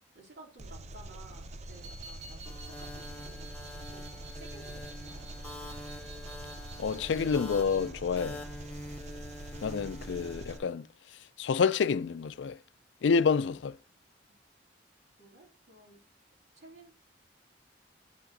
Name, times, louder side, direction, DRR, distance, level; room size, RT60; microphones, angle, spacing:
voice 1, 0.1-5.3 15.2-16.0 16.5-16.9, right 2 dB, 65° right, 3.1 m, -54 dB
Engine, 0.6-10.6, right 1 dB, 40° right, 0.5 m, -45 dB
sound 1, 1.6-7.9, right 3 dB, 80° right, 1.7 m, -51 dB
sound 2, 2.5-10.6, left 1 dB, 10° left, 1.1 m, -46 dB
voice 2, 6.8-8.4 9.6-10.9 11.4-12.6 13.0-13.8, left 5 dB, 85° left, 0.4 m, -28 dB
8.6 x 5.7 x 2.7 m
head